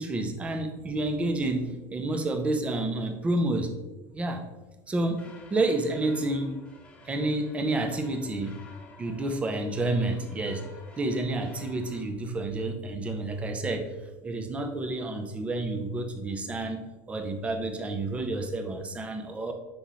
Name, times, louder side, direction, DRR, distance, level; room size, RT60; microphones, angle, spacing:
voice 1, 0.0-3.7 4.1-4.4 4.9-5.2 5.5-6.5 7.1-8.5 9.0-10.6 11.0-13.9 14.2-19.5, right 2 dB, 15° right, 6 dB, 0.7 m, -29 dB
sound 1, 5.0-12.0, left 3 dB, 15° left, 1.1 m, -53 dB
7.8 x 5.5 x 3.1 m, 1.1 s
cardioid pair, 155°, 8 cm